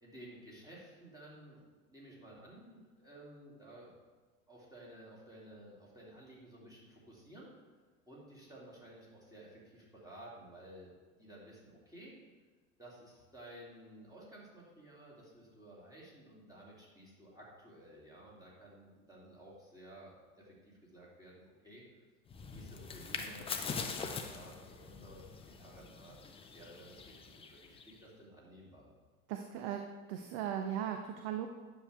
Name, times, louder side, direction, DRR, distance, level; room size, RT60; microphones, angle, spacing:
voice 1, 0.0-3.9 4.5-7.5 8.1-10.9 11.2-12.1 12.8-21.8 22.5-23.5 23.8-26.2 26.5-28.9, right 1 dB, 10° right, -5 dB, 2.6 m, -54 dB
sound 1, 22.3-28.0, left 5 dB, 15° left, 0.5 m, -43 dB
voice 2, 29.3-29.8 30.1-31.5, right 9 dB, 45° right, 5 dB, 0.6 m, -37 dB
9.7 x 6.4 x 3.4 m, 1.4 s
figure-of-eight pair, 80°, 44 cm